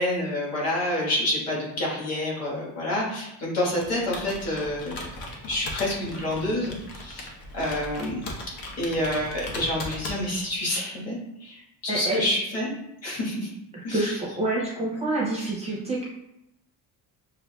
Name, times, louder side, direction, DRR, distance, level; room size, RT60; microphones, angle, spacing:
voice 1, 0.0-5.0 5.5-8.2 8.8-12.8 13.0-13.5 13.8-14.2, left 1 dB, 40° left, -5 dB, 1.3 m, -28 dB
Computer keyboard, 3.7-10.6, left 1 dB, 75° left, 0.9 m, -38 dB
voice 2, 11.9-12.2 13.9-16.0, right 2 dB, 15° right, -4 dB, 0.5 m, -27 dB
6.5 x 2.5 x 2.2 m, 0.85 s
cardioid pair, 175°, 38 cm